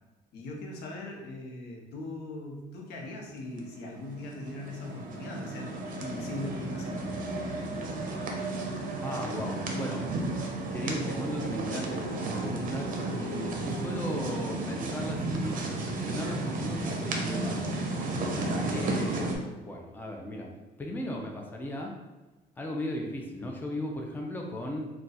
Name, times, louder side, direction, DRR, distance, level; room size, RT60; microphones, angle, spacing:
voice 1, 0.3-7.1 18.4-18.9, left 2 dB, 75° left, 0 dB, 0.7 m, -40 dB
sound 1, 3.6-19.4, right 2 dB, 55° right, 0.6 m, -33 dB
voice 2, 9.0-10.0 10.7-17.7 18.3-20.5 20.8-21.9 22.6-24.9, left 1 dB, 10° left, 1 dB, 0.4 m, -36 dB
2.3 x 2.3 x 4.0 m, 1.1 s
cardioid pair, 110°, 17 cm